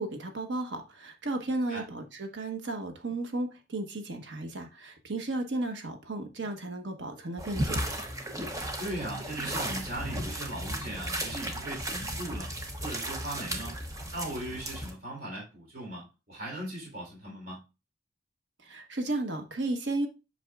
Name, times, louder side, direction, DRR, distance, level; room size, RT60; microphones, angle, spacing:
voice 1, 0.0-7.8 18.6-20.1, right 2 dB, 85° right, 1.2 m, -34 dB
sound 1, 7.4-14.9, right 1 dB, 20° right, 0.9 m, -35 dB
voice 2, 8.8-12.5 12.8-13.8 14.1-17.6, right 1 dB, 50° right, 3.6 m, -38 dB
7.8 x 5.8 x 2.4 m
head